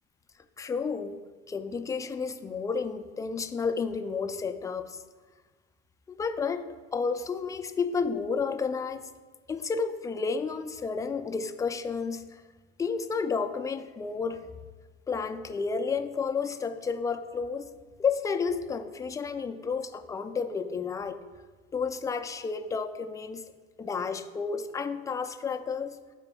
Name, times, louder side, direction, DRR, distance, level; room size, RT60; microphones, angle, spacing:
voice 1, 0.6-1.2 1.5-5.0 6.1-6.6 6.9-9.1 9.5-12.4 12.8-14.4 15.1-17.7 18.0-21.2 21.7-23.4 23.8-26.0, left 5 dB, 10° left, 8 dB, 0.3 m, -31 dB
13.0 x 4.4 x 2.3 m, 1.4 s
supercardioid pair, 100°, 32 cm